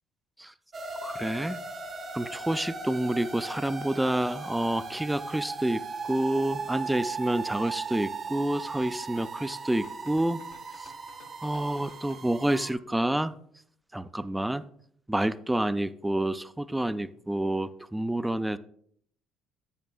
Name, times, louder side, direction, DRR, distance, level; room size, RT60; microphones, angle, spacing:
sound 1, 0.7-12.7, right 4 dB, 45° right, 1.0 m, -38 dB
voice 1, 1.0-1.6 2.1-10.4 10.8-10.9 11.4-13.4 13.9-14.7 15.1-18.6, right 1 dB, 10° right, 14 dB, 0.4 m, -28 dB
sound 2, 8.5-12.2, left 5 dB, 80° left, 1.2 m, -55 dB
11.0 x 8.2 x 2.3 m, 0.66 s
hypercardioid pair, 60°, 0 cm